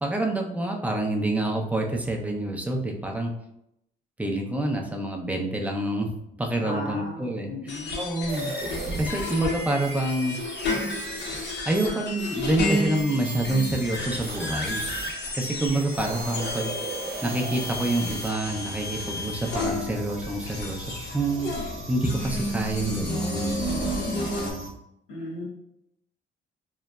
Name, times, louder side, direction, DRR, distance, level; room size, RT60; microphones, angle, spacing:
voice 1, 0.0-3.3 4.2-6.1 6.4-8.5 9.0-10.4 11.7-14.8 15.4-16.7 17.2-20.9 21.1-23.6 24.1-24.7, right 1 dB, 5° right, 1 dB, 0.5 m, -27 dB
voice 2, 6.6-8.0 25.1-25.5, left 1 dB, 85° left, -7 dB, 1.5 m, -36 dB
sound 1, 7.7-24.5, left 1 dB, 60° left, 0.8 m, -32 dB
sound 2, 8.3-15.1 15.6-18.3, right 3 dB, 50° right, 0.6 m, -37 dB
sound 3, 18.4-24.7, left 1 dB, 90° right, 0.6 m, -40 dB
3.7 x 2.0 x 2.2 m, 0.80 s
cardioid pair, 90°, 20 cm